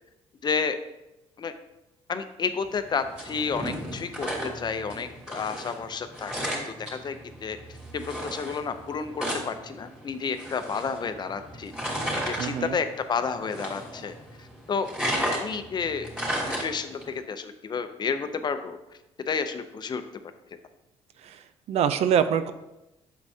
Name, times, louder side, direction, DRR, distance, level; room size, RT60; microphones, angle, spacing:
voice 1, 0.4-0.8 1.4-1.5 2.1-6.3 6.6-7.6 7.9-14.9 15.4-16.1 16.6-18.8 19.3-20.0, left 5 dB, 40° left, 9 dB, 0.6 m, -31 dB
pas zombie route, 2.7-17.2, equal, 5° right, 2.9 m, -34 dB
voice 2, 12.4-12.8 21.2-22.5, right 8 dB, 65° right, 11 dB, 0.5 m, -25 dB
8.1 x 6.7 x 2.8 m, 0.94 s
cardioid pair, 95°, 12 cm